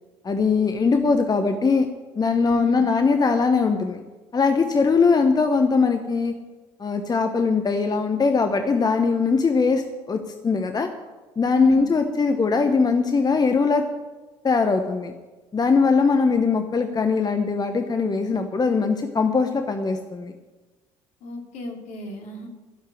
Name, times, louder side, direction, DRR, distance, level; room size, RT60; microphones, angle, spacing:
voice 1, 0.2-1.9 2.2-4.0 4.3-6.3 6.8-10.9 11.4-13.9 14.4-15.1 15.5-20.3, left 4 dB, 30° left, 6 dB, 1.1 m, -21 dB
voice 2, 2.4-2.8 11.5-11.9 21.2-22.5, left 2 dB, 60° left, 2 dB, 2.8 m, -33 dB
13.0 x 7.3 x 9.8 m, 1.2 s
hypercardioid pair, 55°, 14 cm